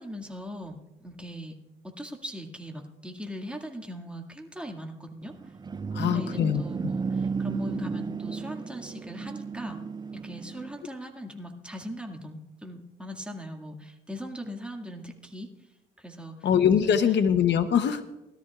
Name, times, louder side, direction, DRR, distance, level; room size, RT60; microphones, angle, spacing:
voice 1, 0.0-1.5 1.8-5.5 6.0-9.8 10.1-15.7 16.0-16.5 16.8-17.0, equal, 5° right, 2 dB, 1.9 m, -40 dB
sound 1, 5.2-10.8, right 5 dB, 20° right, 0.4 m, -34 dB
voice 2, 5.9-6.9 16.4-18.0, left 8 dB, 60° left, 9 dB, 0.8 m, -23 dB
20.5 x 13.0 x 2.4 m, 0.96 s
cardioid pair, 90°, 20 cm